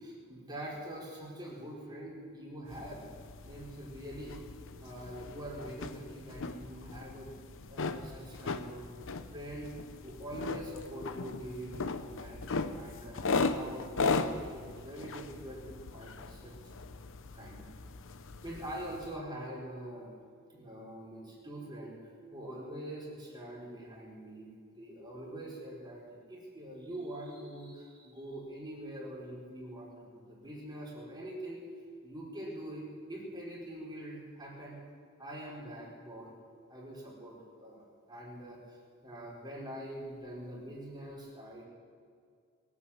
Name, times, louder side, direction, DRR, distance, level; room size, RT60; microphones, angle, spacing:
voice 1, 0.0-3.0 3.4-4.4 4.8-7.3 7.7-8.9 9.3-9.7 10.0-16.5 16.9-17.0 17.3-17.9 18.4-20.1 20.5-22.0 22.3-31.6 32.0-34.8 35.2-36.3 36.7-38.8 39.0-41.7, right 1 dB, 20° right, -5 dB, 4.8 m, -44 dB
sound 1, 2.7-19.2, left 3 dB, 60° left, 0.8 m, -38 dB
22.5 x 8.7 x 7.3 m, 2.2 s
head